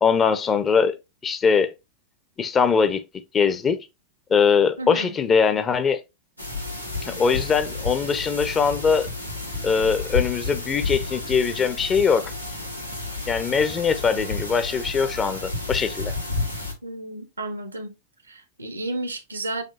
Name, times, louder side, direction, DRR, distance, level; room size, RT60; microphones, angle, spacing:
voice 1, 0.0-1.0 1.2-1.7 2.4-3.0 3.3-3.9 4.3-6.0 7.0-9.1 9.6-12.2 13.3-16.1, left 6 dB, 20° left, 0.6 m, -21 dB
voice 2, 4.8-5.2 16.8-17.9 18.3-19.6, right 2 dB, 80° right, 0.8 m, -32 dB
sound 1, 6.4-16.7, left 3 dB, 90° left, 1.2 m, -31 dB
6.6 x 2.9 x 2.6 m
figure-of-eight pair, 90°, 0 cm